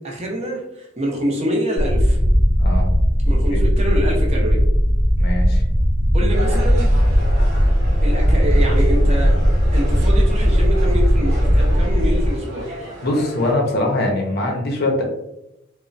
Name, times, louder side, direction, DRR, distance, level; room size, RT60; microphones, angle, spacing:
voice 1, 0.0-2.2 3.3-4.6 6.1-7.0 8.0-9.4 9.7-12.7, equal, 30° right, -1 dB, 0.6 m, -25 dB
sound 1, 1.8-12.3, equal, 90° right, 0.8 m, -17 dB
voice 2, 5.2-5.6 13.0-15.0, left 1 dB, 50° left, 1 dB, 0.6 m, -22 dB
sound 2, 6.3-13.5, equal, 60° right, 0.9 m, -34 dB
2.9 x 2.1 x 2.5 m, 0.85 s
head